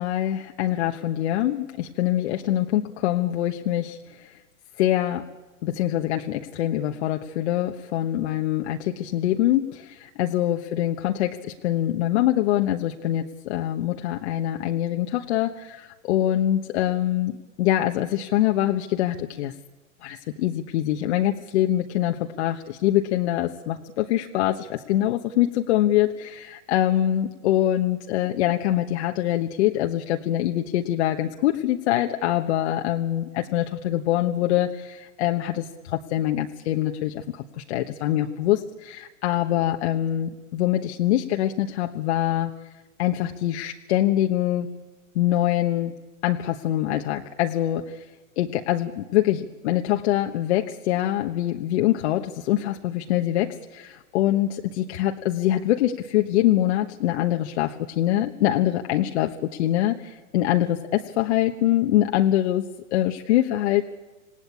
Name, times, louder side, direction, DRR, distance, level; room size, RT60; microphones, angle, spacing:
voice 1, 0.0-4.3 4.8-5.2 5.6-19.5 20.0-38.6 38.9-42.5 43.0-44.7 45.1-45.9 46.2-48.1 48.4-63.8, left 13 dB, 55° left, 4 dB, 1.3 m, -24 dB
27.0 x 18.5 x 8.5 m, 1.2 s
hypercardioid pair, 135°, 41 cm